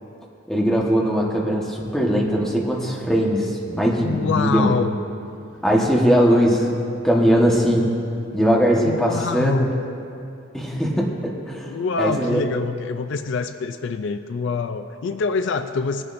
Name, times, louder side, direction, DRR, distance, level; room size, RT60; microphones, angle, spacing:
voice 1, 0.5-4.7 5.6-8.0 8.3-9.7 10.5-11.7 12.0-12.4, equal, 5° left, -3 dB, 1.3 m, -20 dB
voice 2, 4.0-5.0 8.8-9.8 11.7-16.0, left 4 dB, 60° left, 9 dB, 0.4 m, -25 dB
19.0 x 11.0 x 2.6 m, 2.6 s
head